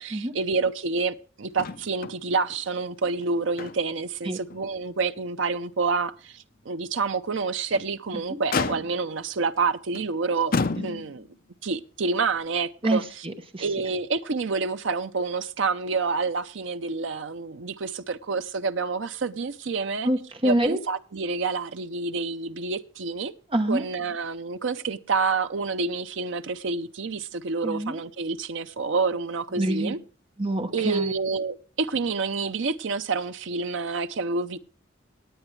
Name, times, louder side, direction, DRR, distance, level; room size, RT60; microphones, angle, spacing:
voice 1, 0.0-10.5 10.8-11.3 11.6-13.2 13.6-20.1 20.4-23.3 23.7-30.0 30.7-34.6, right 4 dB, 70° right, 0.6 m, -28 dB
Motor vehicle (road), 1.6-2.2 2.5-2.6 3.1-4.1 4.5-4.6 5.2-5.3 7.5-7.9 8.5-9.2 9.9-10.1 10.5-11.3 12.4-12.5, left 4 dB, 45° left, 0.6 m, -30 dB
voice 2, 12.8-13.6 20.0-20.8 23.5-23.8 27.6-28.0 29.6-29.9 30.4-31.1, right 1 dB, 25° right, 1.0 m, -26 dB
18.0 x 9.0 x 3.3 m
head